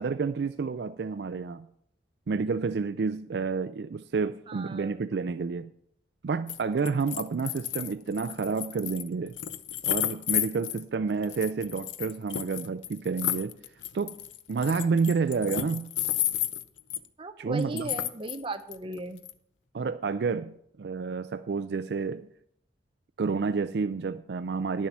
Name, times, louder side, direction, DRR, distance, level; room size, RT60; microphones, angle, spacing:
voice 1, 0.0-1.7 2.3-5.7 6.2-9.4 9.8-13.5 13.9-14.1 14.5-15.9 17.4-17.9 19.7-22.3 23.2-24.9, right 5 dB, 60° right, 12 dB, 0.4 m, -29 dB
voice 2, 4.5-5.1 17.2-19.2, right 2 dB, 30° right, 7 dB, 0.8 m, -37 dB
sound 1, 6.5-6.6 6.9-10.8 11.2-17.1 17.6-18.4 18.7-19.3, left 12 dB, 90° left, 0.6 m, -32 dB
11.0 x 7.3 x 6.0 m, 0.68 s
head